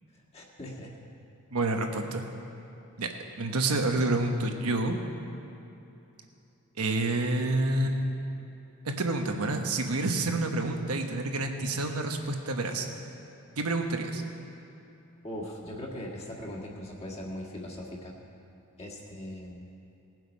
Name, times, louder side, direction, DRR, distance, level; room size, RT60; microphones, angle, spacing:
voice 1, 0.3-0.9 15.2-18.1 18.8-19.7, left 1 dB, 30° left, -3 dB, 1.7 m, -40 dB
voice 2, 1.5-2.3 3.0-3.1 3.4-5.0 6.8-8.1 8.8-12.9 13.6-14.2, right 2 dB, 80° right, 4 dB, 1.1 m, -28 dB
18.5 x 7.8 x 5.3 m, 2.8 s
head